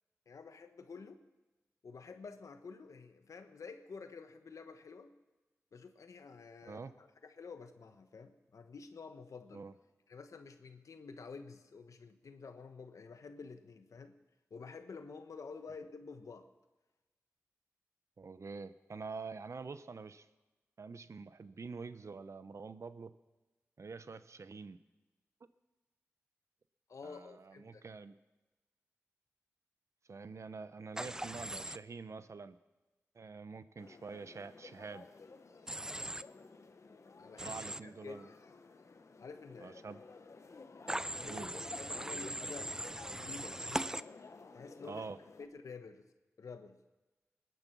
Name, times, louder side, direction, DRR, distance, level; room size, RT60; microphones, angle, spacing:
voice 1, 0.3-1.2 1.8-5.1 5.7-9.6 10.1-14.2 14.5-16.5 26.9-27.9 37.2-37.6 37.8-38.4 39.2-39.8 41.1-41.4 41.8-42.7 43.1-43.9 44.5-45.0 45.4-46.1 46.4-46.8, left 4 dB, 80° left, 8 dB, 1.1 m, -50 dB
voice 2, 6.6-6.9 9.5-9.7 18.2-20.3 20.8-23.2 23.8-24.8 27.0-28.1 30.1-32.6 33.1-35.1 37.4-38.3 39.6-40.0 41.3-41.5 44.8-45.2, right 4 dB, 65° right, 13 dB, 0.8 m, -46 dB
Human voice / Train, 31.0-31.8 35.7-36.2 37.4-37.8 40.9-44.0, right 1 dB, 10° right, 0.4 m, -40 dB
sound 1, 33.8-45.5, left 4 dB, 65° left, 1.2 m, -54 dB
20.5 x 9.6 x 6.1 m, 1.1 s
cardioid pair, 45°, 5 cm